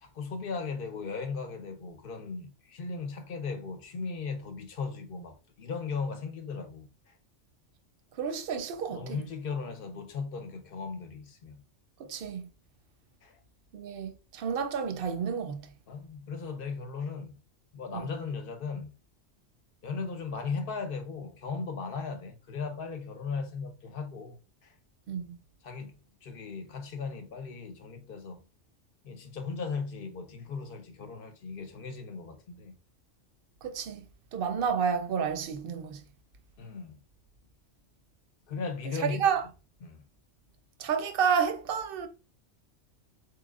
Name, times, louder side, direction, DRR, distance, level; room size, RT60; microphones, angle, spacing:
voice 1, 0.0-6.9 8.9-11.6 13.2-13.4 15.9-17.4 17.7-18.9 19.8-24.7 25.6-28.4 29.0-32.7 36.6-37.0 38.5-39.3 39.8-40.0, left 5 dB, 55° left, 0.8 m, -37 dB
voice 2, 8.2-9.2 12.0-12.4 13.7-15.6 17.9-18.1 25.1-25.4 33.6-34.0 34.3-36.0 39.0-39.4 40.8-42.1, right 7 dB, 60° right, 0.7 m, -30 dB
4.2 x 3.1 x 2.4 m
omnidirectional pair, 1.2 m